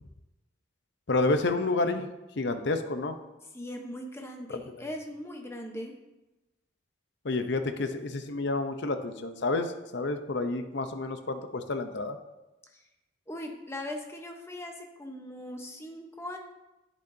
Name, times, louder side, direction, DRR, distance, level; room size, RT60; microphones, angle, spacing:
voice 1, 1.1-2.1 2.4-3.2 4.7-4.8 7.2-12.2, left 3 dB, 55° left, 8 dB, 0.7 m, -29 dB
voice 2, 3.5-5.9 12.7-12.8 13.3-16.4, left 1 dB, 10° left, 3 dB, 0.8 m, -40 dB
10.5 x 8.2 x 2.7 m, 1.0 s
head